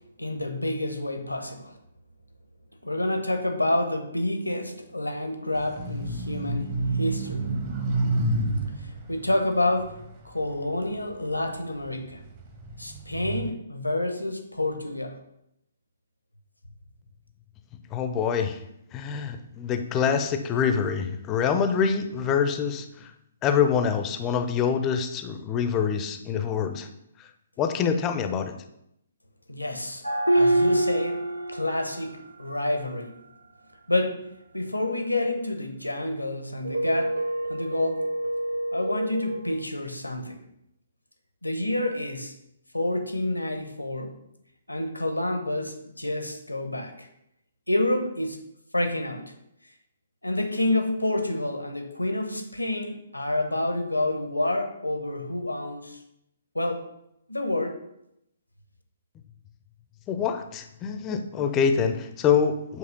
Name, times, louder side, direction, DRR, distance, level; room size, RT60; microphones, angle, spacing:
voice 1, 0.2-1.8 2.8-7.4 8.8-9.9 10.2-12.2 12.8-15.2 29.5-30.1 30.3-31.2 31.5-33.2 33.9-34.2 34.5-37.2 37.5-38.1 38.7-40.4 41.4-42.3 42.7-44.1 44.7-47.1 47.7-48.4 48.7-49.3 50.2-56.0 56.5-56.8 57.3-57.8, left 1 dB, 85° left, 5 dB, 0.9 m, -28 dB
sound 1, 5.5-11.1 11.6-13.5, right 2 dB, 35° right, 1.1 m, -30 dB
voice 2, 17.9-18.6 18.9-23.1 23.4-26.9 27.6-28.5 60.1-62.8, left 7 dB, 20° left, 7 dB, 0.6 m, -25 dB
sound 2, 30.0-32.2 36.6-39.6, right 1 dB, 90° right, 0.7 m, -26 dB
8.0 x 3.1 x 5.2 m, 0.79 s
figure-of-eight pair, 130°, 0 cm